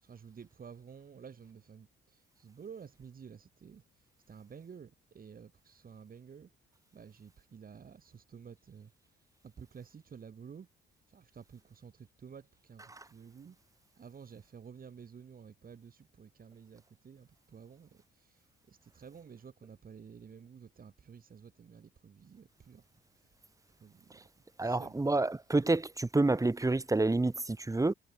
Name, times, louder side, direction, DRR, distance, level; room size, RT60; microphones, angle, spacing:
voice 1, 0.0-3.8 4.3-6.5 6.9-8.9 9.4-10.7 11.1-13.6 14.0-18.4 18.7-22.8 23.8-24.3 24.6-25.0, right 6 dB, 45° right, 7.7 m, -52 dB
voice 2, 24.6-27.9, right 2 dB, 15° right, 2.7 m, -28 dB
cardioid pair, 90°, 20 cm